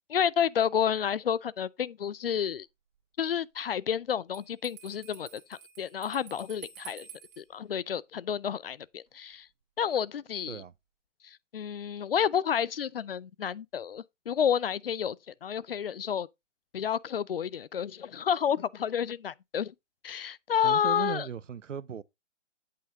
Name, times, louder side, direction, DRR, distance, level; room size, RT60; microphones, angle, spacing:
voice 1, 0.1-2.7 3.2-7.1 7.4-9.5 9.8-10.6 11.2-16.3 16.7-19.7 20.0-21.3, left 8 dB, 50° left, 0.5 m, -30 dB
Bell, 4.3-7.4, right 9 dB, 35° right, 2.8 m, -50 dB
voice 2, 20.6-22.0, right 7 dB, 75° right, 0.7 m, -37 dB
8.7 x 8.4 x 2.8 m
figure-of-eight pair, 135°, 38 cm